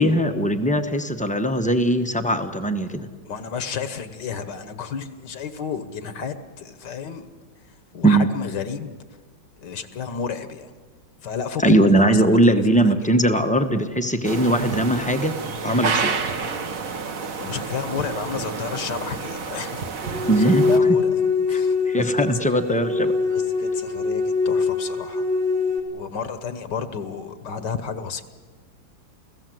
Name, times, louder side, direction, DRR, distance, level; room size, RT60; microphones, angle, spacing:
voice 1, 0.0-3.1 8.0-8.3 11.6-15.3 15.6-16.1 20.3-20.7 21.5-21.6 21.9-23.1, right 1 dB, 5° left, 7 dB, 0.7 m, -20 dB
voice 2, 3.3-7.3 7.9-8.9 9.6-10.7 11.2-13.1 17.4-20.0 20.4-21.1 21.5-22.8 23.3-25.3 25.9-28.2, left 6 dB, 65° left, 11 dB, 1.6 m, -32 dB
sound 1, 14.2-20.8, right 5 dB, 50° right, 1.6 m, -29 dB
sound 2, 20.0-25.8, left 4 dB, 80° right, 3.4 m, -23 dB
29.5 x 16.0 x 7.8 m, 1.5 s
omnidirectional pair, 2.1 m